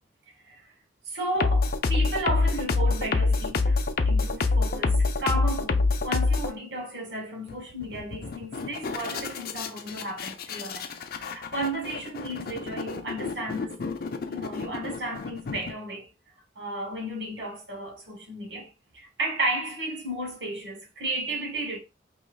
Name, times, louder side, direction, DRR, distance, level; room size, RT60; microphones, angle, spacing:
voice 1, 1.1-3.8 4.0-13.8 14.3-16.1 16.5-21.8, right 1 dB, 75° right, 1.4 m, -33 dB
sound 1, 1.4-6.5 7.5-7.6 7.8-15.7, left 3 dB, 55° left, 0.5 m, -26 dB
4.9 x 3.0 x 2.3 m
head